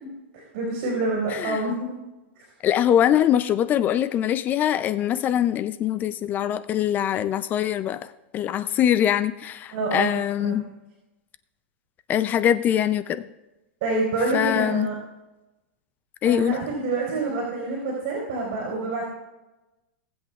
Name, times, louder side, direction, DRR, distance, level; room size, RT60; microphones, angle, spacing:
voice 1, 0.3-1.9 9.7-10.5 13.8-14.9 16.2-19.0, right 2 dB, 55° right, -2 dB, 3.9 m, -27 dB
voice 2, 2.6-8.0 8.3-10.6 12.1-13.2 14.3-14.9 16.2-16.6, left 10 dB, 25° left, 13 dB, 0.4 m, -23 dB
18.5 x 7.9 x 2.4 m, 1.0 s
hypercardioid pair, 135°, 7 cm